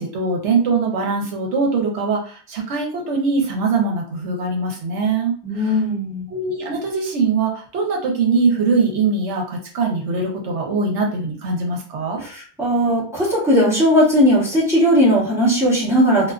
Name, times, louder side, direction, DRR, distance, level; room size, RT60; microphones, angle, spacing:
voice 1, 0.0-5.8 6.3-12.2, right 4 dB, 75° right, 1 dB, 1.0 m, -22 dB
voice 2, 5.4-6.2 12.2-16.3, equal, 5° right, -7 dB, 0.9 m, -17 dB
2.4 x 2.3 x 2.3 m, 0.42 s
omnidirectional pair, 1.2 m